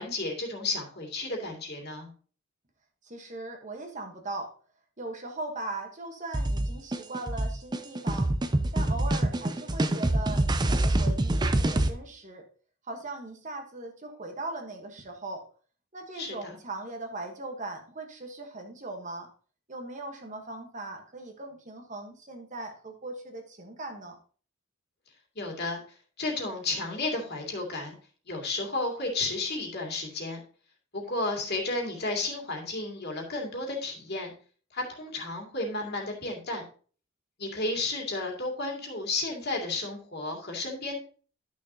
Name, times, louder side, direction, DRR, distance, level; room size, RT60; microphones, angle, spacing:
voice 1, 0.0-2.1 16.1-16.6 25.4-25.8 26.2-28.0 28.3-30.4 30.9-34.3 34.7-36.6 37.4-41.0, left 2 dB, 50° left, 0 dB, 2.3 m, -32 dB
voice 2, 3.0-4.5 5.0-8.3 8.7-12.5 12.9-15.4 15.9-19.3 19.7-24.2, right 2 dB, 35° right, 3 dB, 1.2 m, -39 dB
sound 1, 6.3-11.9, right 1 dB, 20° right, 0.4 m, -26 dB
11.0 x 6.3 x 2.8 m, 0.41 s
head